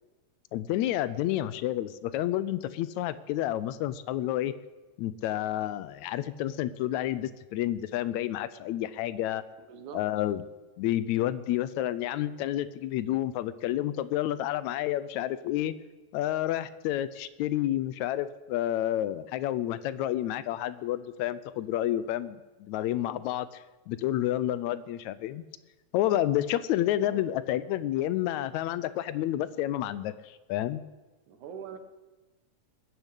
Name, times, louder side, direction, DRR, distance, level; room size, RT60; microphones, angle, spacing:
voice 1, 0.5-4.6 5.0-9.4 9.9-10.4 10.8-15.8 16.1-25.4 25.9-30.8, left 13 dB, 80° left, 15 dB, 1.9 m, -30 dB
voice 2, 9.6-10.0 27.1-27.3 31.3-31.8, right 7 dB, 90° right, 8 dB, 2.7 m, -43 dB
20.0 x 7.0 x 8.3 m, 1.2 s
omnidirectional pair, 3.3 m